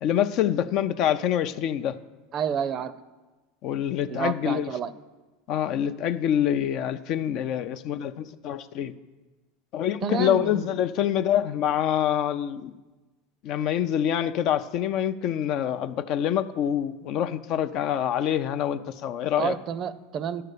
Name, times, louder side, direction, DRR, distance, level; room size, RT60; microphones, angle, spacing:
voice 1, 0.0-2.0 3.6-4.7 5.5-8.9 9.7-12.7 13.4-19.6, left 10 dB, 55° left, 11 dB, 0.5 m, -26 dB
voice 2, 2.3-2.9 4.1-4.9 10.0-10.7 19.4-20.4, right 7 dB, 40° right, 15 dB, 0.5 m, -29 dB
11.0 x 6.6 x 6.7 m, 1.2 s
hypercardioid pair, 105°, 0 cm